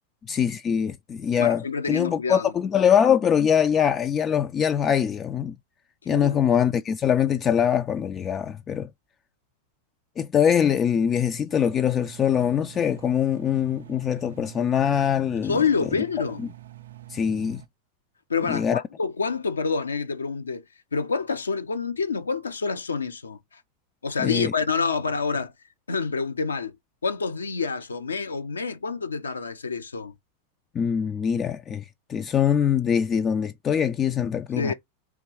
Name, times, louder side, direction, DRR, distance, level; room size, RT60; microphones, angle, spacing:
voice 1, 0.3-5.6 6.1-8.9 10.2-15.6 17.1-17.6 18.5-18.8 24.2-24.5 30.7-34.7, left 8 dB, 25° left, 0.3 m, -23 dB
voice 2, 1.4-2.5 6.1-6.5 15.4-16.5 18.3-20.6 20.9-23.6 24.0-25.5 25.9-26.8 27.0-30.1 34.6-34.7, left 5 dB, 75° left, 0.6 m, -27 dB
Engine, 11.5-17.7, right 15 dB, 60° right, 0.4 m, -46 dB
3.6 x 2.9 x 4.6 m
figure-of-eight pair, 90°, 0 cm